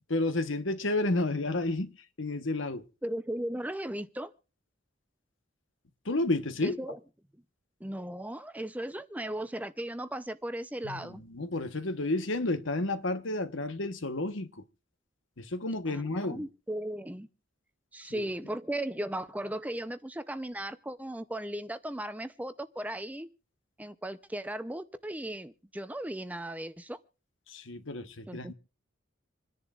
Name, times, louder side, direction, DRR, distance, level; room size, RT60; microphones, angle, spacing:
voice 1, 0.1-1.9 2.2-2.8 6.1-6.8 10.8-11.0 11.3-14.6 15.4-16.4 18.1-18.2 27.5-28.5, left 2 dB, 70° left, 1.1 m, -31 dB
voice 2, 3.0-4.3 6.6-7.0 7.8-11.2 15.9-17.3 17.9-23.3 23.8-27.0 28.3-28.5, right 1 dB, 10° right, 0.6 m, -37 dB
27.0 x 10.5 x 2.4 m
head